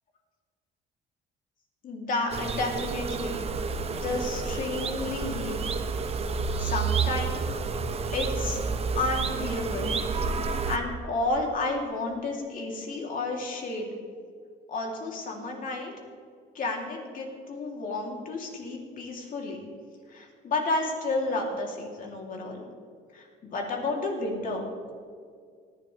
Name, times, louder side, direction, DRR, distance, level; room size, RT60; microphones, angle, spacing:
voice 1, 1.8-3.5 3.9-5.6 6.6-7.4 8.1-8.6 8.9-10.0 10.3-13.9 14.7-15.9 16.5-19.6 20.1-22.6 23.1-24.9, left 2 dB, 55° left, 0 dB, 3.0 m, -31 dB
sound 1, 2.3-10.8, right 5 dB, 35° right, 0.9 m, -30 dB
18.5 x 11.0 x 3.4 m, 2.1 s
cardioid pair, 110°, 17 cm